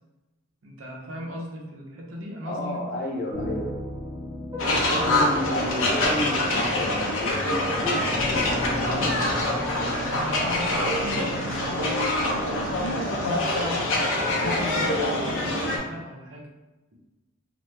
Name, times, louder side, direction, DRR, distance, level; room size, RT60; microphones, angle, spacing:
voice 1, 0.6-2.8 8.8-9.6 9.9-12.3 12.8-14.1 14.4-16.5, equal, 75° right, -1 dB, 0.7 m, -37 dB
voice 2, 2.4-3.7 4.9-8.5, left 1 dB, 45° left, -3 dB, 0.7 m, -31 dB
sound 1, 3.3-12.9, left 1 dB, 20° right, 0.6 m, -37 dB
sound 2, 4.6-15.8, left 1 dB, 80° left, 0.7 m, -25 dB
sound 3, 5.7-13.7, right 1 dB, 15° left, 1.0 m, -40 dB
2.9 x 2.1 x 3.1 m, 1.1 s
head